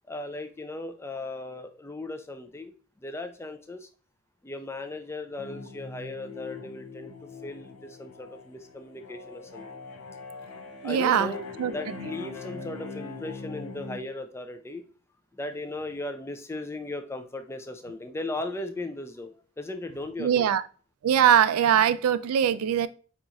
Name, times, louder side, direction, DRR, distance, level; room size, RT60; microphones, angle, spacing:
voice 1, 0.1-3.9 4.4-9.8 10.8-11.4 11.7-14.8 15.3-20.5, left 2 dB, 10° left, 0.3 m, -37 dB
sound 1, 5.4-14.0, left 4 dB, 85° left, 0.7 m, -41 dB
voice 2, 10.8-11.3 11.6-11.7 12.0-12.1 20.2-20.6 21.0-22.9, right 9 dB, 80° right, 0.3 m, -22 dB
5.4 x 2.9 x 2.4 m
head